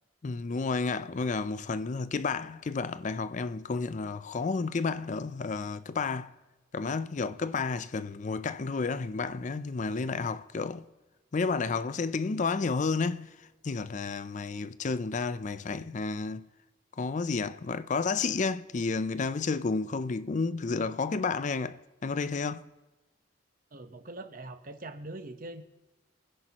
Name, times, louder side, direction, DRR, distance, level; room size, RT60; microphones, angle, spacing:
voice 1, 0.2-6.3 6.7-10.9 11.3-13.3 13.6-16.5 17.0-22.7, left 4 dB, 40° left, 0.4 m, -31 dB
voice 2, 23.7-25.6, right 2 dB, 45° right, 1.0 m, -42 dB
27.0 x 10.5 x 3.0 m
head